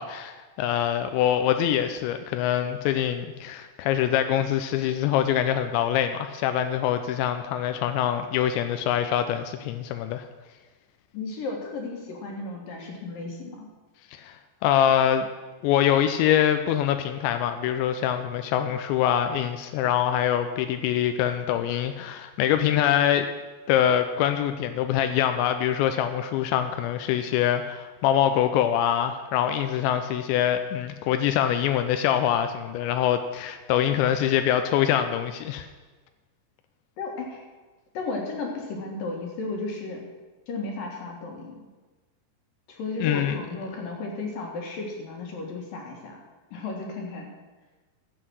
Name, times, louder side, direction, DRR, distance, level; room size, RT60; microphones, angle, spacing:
voice 1, 0.0-10.2 14.2-14.3 14.6-15.3 15.6-23.3 23.7-35.7 43.0-43.4, left 10 dB, 90° left, 8 dB, 2.9 m, -24 dB
voice 2, 11.1-13.7 37.0-37.4 37.9-40.0 40.5-41.6 42.7-46.2 46.5-47.3, left 3 dB, 60° left, 1 dB, 2.9 m, -34 dB
12.5 x 8.0 x 6.2 m, 1.3 s
omnidirectional pair, 5.1 m